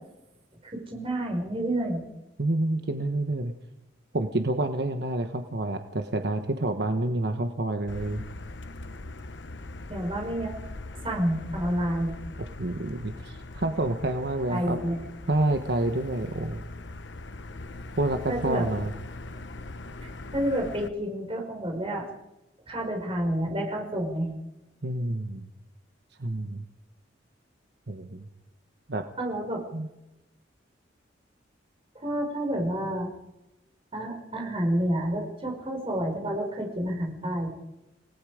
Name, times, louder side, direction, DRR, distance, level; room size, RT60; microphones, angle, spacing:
voice 1, 0.7-2.0 9.9-10.5 11.0-12.1 14.5-15.0 18.3-18.6 20.0-22.1 22.7-24.3 29.2-29.6 32.0-33.1 33.9-37.5, right 1 dB, 30° right, 1 dB, 5.4 m, -29 dB
voice 2, 2.4-3.5 4.1-8.2 12.6-14.8 15.3-16.6 18.0-18.9 24.8-25.5 26.2-26.6 27.9-28.3 28.9-29.0 29.7-29.9, right 2 dB, 60° right, 6 dB, 1.2 m, -28 dB
Motor vehicle (road), 7.9-20.9, left 2 dB, 75° left, 1.0 m, -41 dB
28.5 x 18.5 x 5.1 m, 0.95 s
head